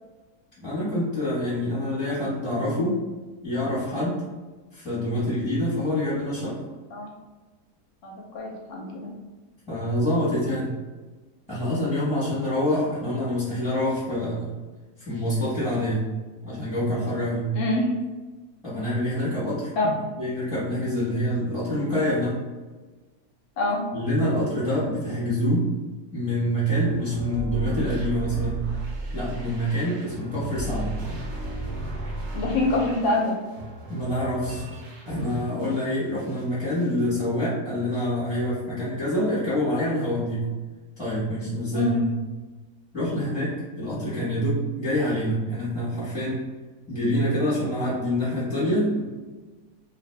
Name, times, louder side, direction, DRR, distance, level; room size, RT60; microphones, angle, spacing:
voice 1, 0.6-3.0 3.4-4.2 4.7-6.6 9.7-10.7 11.5-14.5 15.1-16.1 16.4-17.5 18.6-22.3 23.9-25.7 26.1-28.7 29.1-30.9 33.9-34.6 35.1-40.4 41.0-42.1 42.9-46.4 46.9-49.0, equal, 5° right, -10 dB, 0.8 m, -26 dB
voice 2, 8.0-9.1 17.5-17.9 19.8-19.9 23.6-23.8 32.3-33.4 41.7-42.0, left 2 dB, 65° left, -2 dB, 0.8 m, -25 dB
sound 1, 26.7-35.9 36.2-37.0, right 1 dB, 65° right, 0.7 m, -35 dB
2.6 x 2.6 x 3.3 m, 1.3 s
omnidirectional pair, 1.8 m